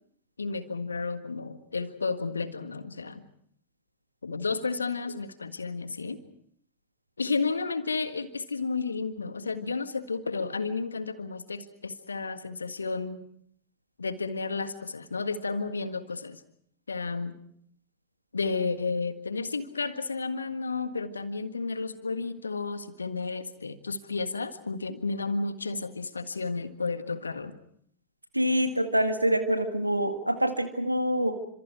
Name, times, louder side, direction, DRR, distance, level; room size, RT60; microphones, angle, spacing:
voice 1, 0.4-3.2 4.2-6.2 7.2-13.2 14.0-16.4 16.9-17.3 18.3-27.6, left 4 dB, 75° left, 10 dB, 1.6 m, -32 dB
voice 2, 28.3-31.3, equal, 85° right, 7 dB, 1.9 m, -25 dB
28.5 x 27.0 x 4.7 m, 0.65 s
figure-of-eight pair, 90°, 0 cm